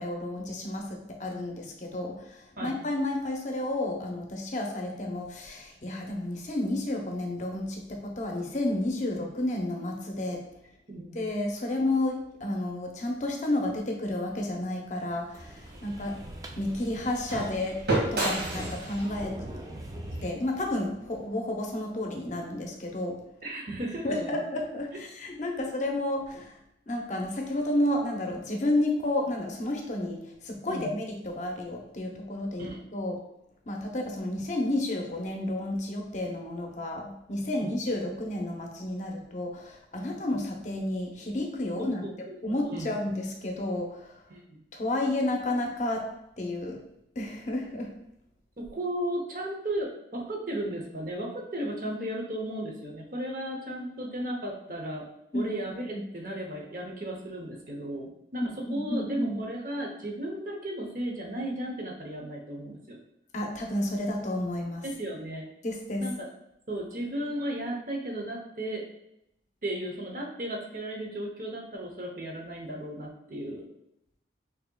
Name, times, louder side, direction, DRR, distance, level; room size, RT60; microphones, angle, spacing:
voice 1, 0.0-10.4 11.1-16.1 16.6-17.8 18.1-19.4 20.2-23.2 24.0-26.6 26.9-33.1 33.7-42.1 42.4-44.1 44.7-46.1 46.4-46.8 47.2-47.9 55.3-55.5 55.9-56.0 58.4-59.4 63.3-64.9 65.6-66.1, left 1 dB, 45° left, 1 dB, 0.7 m, -31 dB
sound 1, 15.1-21.2, right 2 dB, 65° right, 1.4 m, -34 dB
sound 2, 15.3-20.3, right 1 dB, 20° right, 0.4 m, -42 dB
voice 2, 18.2-18.6 23.4-24.4 25.5-25.6 30.7-31.0 32.6-32.8 37.5-37.8 41.8-42.3 42.6-42.9 44.3-44.6 48.6-55.1 55.3-63.0 64.8-65.5 66.0-66.3 66.7-68.9 69.6-73.7, right 1 dB, 50° right, 1 dB, 0.8 m, -35 dB
6.2 x 2.8 x 2.3 m, 0.79 s
head